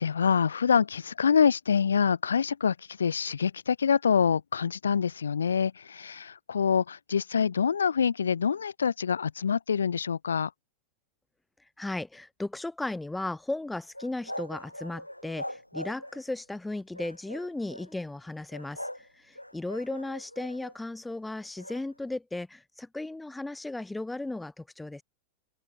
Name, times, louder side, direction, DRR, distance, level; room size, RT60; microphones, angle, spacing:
voice 1, 0.0-10.5, left 6 dB, 70° left, 1.6 m, -26 dB
voice 2, 11.8-25.0, left 2 dB, 5° left, 0.9 m, -36 dB
sound 1, 13.9-16.3 16.9-17.9 18.5-19.1 19.4-20.8 21.6-21.8, left 1 dB, 90° left, 1.0 m, -41 dB
open air
figure-of-eight pair, 90°, 0 cm